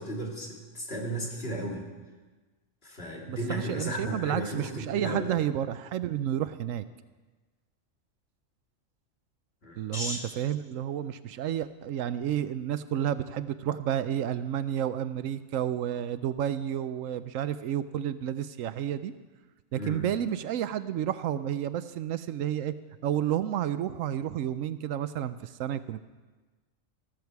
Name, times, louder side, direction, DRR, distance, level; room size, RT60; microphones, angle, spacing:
voice 1, 0.0-1.9 2.8-5.3 9.6-10.2 19.7-20.1, right 1 dB, 50° left, -1 dB, 2.7 m, -34 dB
voice 2, 3.3-6.8 9.8-19.1 19.7-22.7 23.0-26.0, right 10 dB, 80° right, 13 dB, 1.0 m, -31 dB
14.5 x 13.5 x 4.7 m, 1.3 s
omnidirectional pair, 1.4 m